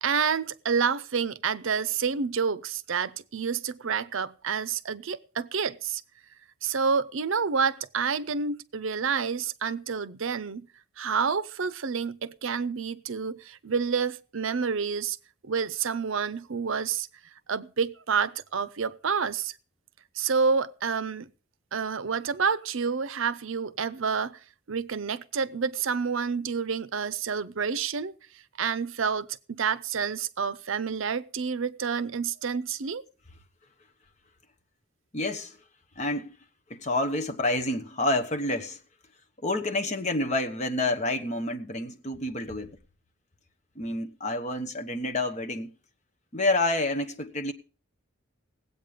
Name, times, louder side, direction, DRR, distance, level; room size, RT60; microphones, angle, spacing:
voice 1, 0.0-6.0 6.6-10.7 11.0-15.2 15.4-17.1 17.5-19.5 20.1-21.3 21.7-24.4 24.7-28.1 28.6-33.0, right 6 dB, 70° right, 0.6 m, -28 dB
voice 2, 35.1-35.6 36.0-36.3 36.7-38.8 39.4-42.8 43.8-45.7 46.3-47.5, left 2 dB, 35° left, 1.1 m, -28 dB
18.5 x 8.4 x 5.1 m
head